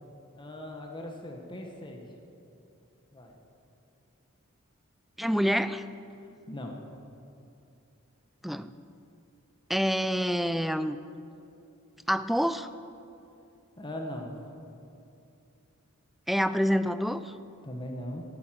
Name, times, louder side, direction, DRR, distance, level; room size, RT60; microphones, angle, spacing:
voice 1, 0.3-2.1 3.1-3.4 6.2-7.0 13.8-14.3 17.6-18.2, left 1 dB, 20° left, 2 dB, 1.1 m, -40 dB
voice 2, 5.2-5.9 8.4-8.7 9.7-11.0 12.1-12.7 16.3-17.3, equal, ahead, 13 dB, 0.3 m, -27 dB
11.5 x 10.5 x 7.5 m, 2.7 s
head